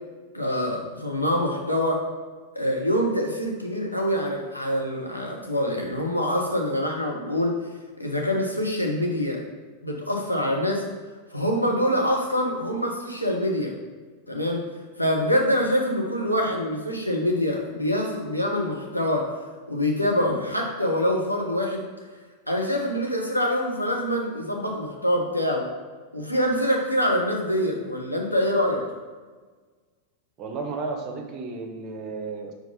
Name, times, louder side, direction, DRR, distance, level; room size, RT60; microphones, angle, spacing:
voice 1, 0.3-2.0 2.5-7.5 8.0-9.4 9.8-10.9 11.3-13.7 14.3-14.7 15.0-19.3 19.7-21.9 22.5-25.7 26.1-28.9, equal, 90° left, -1 dB, 1.0 m, -25 dB
voice 2, 30.4-32.5, right 3 dB, 35° right, 3 dB, 0.9 m, -33 dB
4.6 x 4.5 x 5.2 m, 1.4 s
figure-of-eight pair, 90°, 0 cm